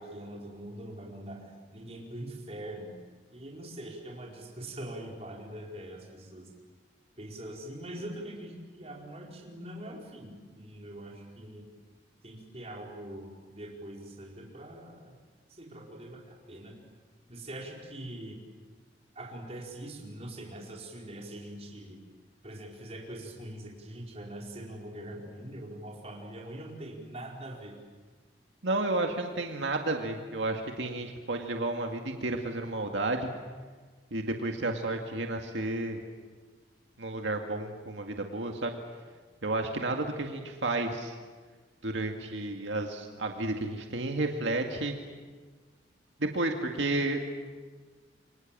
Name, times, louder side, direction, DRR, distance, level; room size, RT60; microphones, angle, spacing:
voice 1, 0.0-2.9 3.3-6.5 7.2-11.7 12.2-15.2 15.5-16.8 17.3-18.4 19.1-22.0 22.4-27.8, right 1 dB, 35° right, -1 dB, 4.8 m, -43 dB
voice 2, 28.6-33.3 34.1-36.0 37.0-38.8 39.4-41.2 41.8-44.9 46.2-47.2, right 2 dB, 85° right, 3 dB, 2.1 m, -31 dB
29.0 x 24.5 x 7.5 m, 1.4 s
head